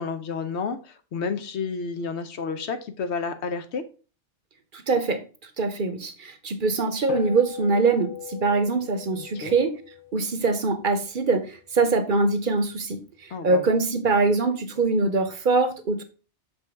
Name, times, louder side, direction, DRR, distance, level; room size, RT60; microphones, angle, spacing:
voice 1, 0.0-3.8 9.2-9.6 13.3-13.7, left 5 dB, 75° left, 9 dB, 1.0 m, -31 dB
voice 2, 4.7-5.2 5.6-9.7 10.1-13.0 13.4-16.0, right 3 dB, 50° right, 9 dB, 0.9 m, -23 dB
sound 1, 7.1-11.7, left 11 dB, 50° left, 1.1 m, -39 dB
6.4 x 5.3 x 3.4 m, 0.34 s
omnidirectional pair, 1.2 m